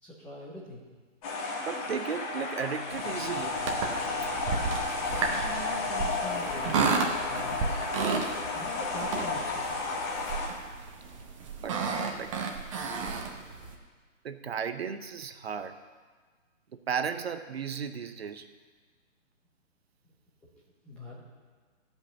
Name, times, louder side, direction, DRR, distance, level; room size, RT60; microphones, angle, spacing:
voice 1, 0.0-0.8 5.0-7.8 8.5-10.0 20.8-21.2, left 1 dB, 5° left, -7 dB, 0.6 m, -43 dB
sound 1, 1.2-10.5, left 3 dB, 25° left, 1.9 m, -33 dB
voice 2, 1.7-3.6 11.6-11.8 12.1-12.3 14.2-15.8 16.9-18.5, right 7 dB, 50° right, 10 dB, 0.7 m, -34 dB
sound 2, 2.9-13.7, right 4 dB, 25° right, 0.9 m, -33 dB
14.5 x 5.4 x 7.1 m, 1.5 s
hypercardioid pair, 145°, 39 cm